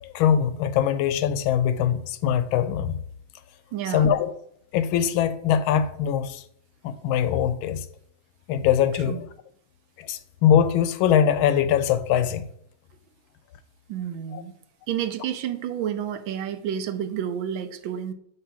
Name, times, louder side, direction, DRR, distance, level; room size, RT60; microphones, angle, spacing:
voice 1, 0.0-3.0 3.9-4.3 4.7-6.4 6.8-7.9 8.5-9.3 10.0-12.5 14.3-14.4, left 9 dB, 80° left, 1.4 m, -22 dB
voice 2, 3.7-4.1 9.1-9.2 13.9-14.5 14.9-18.1, right 9 dB, 75° right, 1.4 m, -30 dB
8.2 x 2.9 x 6.0 m
omnidirectional pair, 2.2 m